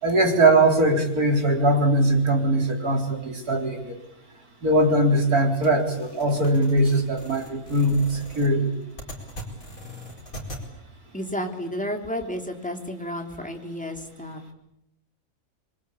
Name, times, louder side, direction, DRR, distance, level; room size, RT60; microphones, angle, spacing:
voice 1, 0.0-4.0 4.6-8.7, right 1 dB, 75° right, 3 dB, 4.6 m, -21 dB
sound 1, 5.6-10.6, left 1 dB, 65° left, 5.2 m, -40 dB
voice 2, 11.1-14.5, equal, 5° left, 3 dB, 3.3 m, -32 dB
27.0 x 23.5 x 8.6 m, 0.85 s
omnidirectional pair, 1.6 m